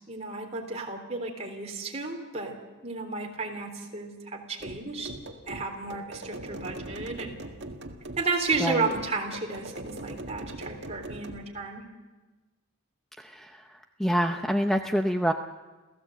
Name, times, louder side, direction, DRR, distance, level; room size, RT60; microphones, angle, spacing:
voice 1, 0.1-2.6 2.8-5.1 5.5-7.3 8.2-11.8, right 3 dB, 30° right, 2 dB, 3.6 m, -32 dB
sound 1, 4.6-11.5, right 1 dB, 55° right, 1.9 m, -41 dB
voice 2, 13.2-13.6 14.0-15.3, equal, ahead, 5 dB, 0.6 m, -26 dB
28.5 x 16.0 x 8.0 m, 1.2 s
head